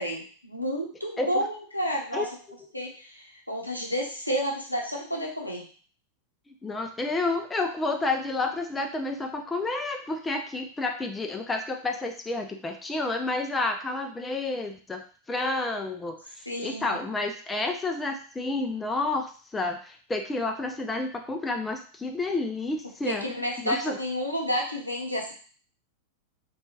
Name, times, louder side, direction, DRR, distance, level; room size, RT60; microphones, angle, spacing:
voice 1, 0.0-2.3 2.7-5.7 16.5-17.0 23.0-25.3, equal, 90° left, -1 dB, 0.6 m, -30 dB
voice 2, 6.5-15.0 15.3-16.2 16.6-23.3 23.6-24.0, left 2 dB, 15° left, 4 dB, 0.4 m, -30 dB
2.7 x 2.3 x 2.8 m, 0.41 s
figure-of-eight pair, 90°, 0 cm